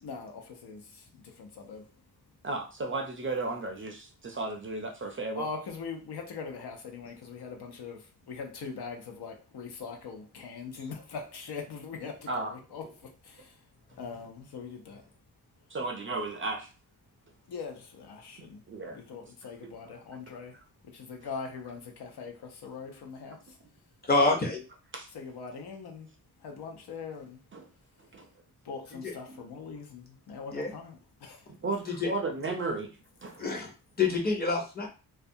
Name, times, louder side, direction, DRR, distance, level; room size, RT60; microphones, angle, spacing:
voice 1, 0.0-2.0 5.4-13.7 14.0-15.1 17.5-18.6 18.9-23.6 24.2-24.4 25.1-26.1 26.4-27.4 28.6-31.5, left 5 dB, 80° left, 0.7 m, -42 dB
voice 2, 2.4-5.5 12.3-12.5 15.7-16.7 18.7-19.0 24.9-25.1 27.5-27.7 28.1-28.3 31.6-32.9 33.2-33.4, right 3 dB, 35° right, 0.4 m, -34 dB
voice 3, 24.1-24.6 29.0-29.1 30.5-30.7 31.9-32.1 33.4-33.7 34.0-34.9, left 3 dB, 25° left, 0.6 m, -26 dB
2.4 x 2.2 x 2.6 m
wide cardioid pair, 140°, 39 cm